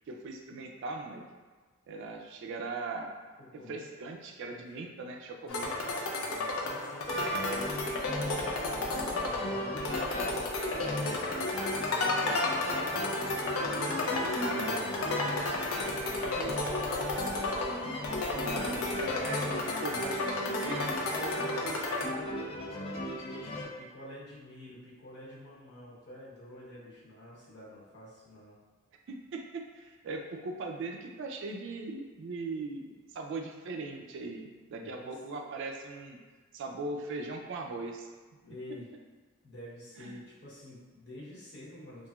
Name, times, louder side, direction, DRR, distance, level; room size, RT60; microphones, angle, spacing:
voice 1, 0.1-1.2 1.9-3.1 3.5-5.9 18.3-21.0 29.1-36.2 36.5-38.1 40.0-40.2, right 3 dB, 60° right, 3 dB, 0.3 m, -39 dB
voice 2, 3.4-3.9 4.5-4.8 5.4-5.6 6.1-7.6 8.1-11.4 11.9-17.4 18.9-19.2 21.1-28.6 34.8-35.1 38.4-38.9 39.4-42.1, equal, 55° left, -8 dB, 0.9 m, -47 dB
sound 1, 5.5-22.1, left 2 dB, 90° left, 0.4 m, -33 dB
sound 2, 7.1-23.6, left 1 dB, 25° left, 0.4 m, -37 dB
2.9 x 2.5 x 2.3 m, 1.4 s
head